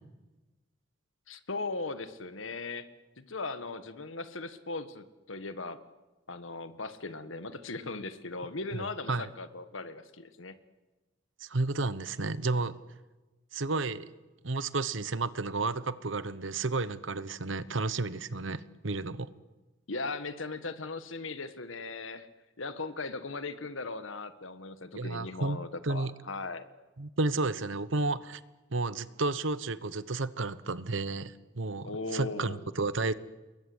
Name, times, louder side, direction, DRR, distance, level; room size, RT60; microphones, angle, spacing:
voice 1, 1.3-2.9 3.2-5.8 6.3-10.6 19.9-22.3 22.6-26.7 31.8-32.6, left 3 dB, 85° left, 11 dB, 1.7 m, -38 dB
voice 2, 8.7-9.3 11.4-12.8 13.5-14.1 14.4-19.3 24.9-25.6 25.8-26.1 27.0-28.4 28.7-33.1, right 3 dB, 75° right, 15 dB, 1.1 m, -32 dB
29.0 x 22.0 x 8.1 m, 1.2 s
head